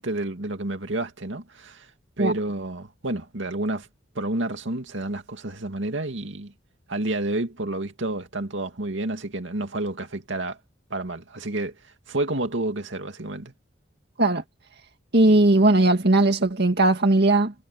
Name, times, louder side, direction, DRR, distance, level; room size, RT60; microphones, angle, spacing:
voice 1, 0.0-1.9 2.2-3.9 4.1-6.5 6.9-10.6 10.9-13.5, right 2 dB, 80° right, 2.4 m, -30 dB
voice 2, 15.1-17.5, right 2 dB, 60° right, 2.1 m, -18 dB
head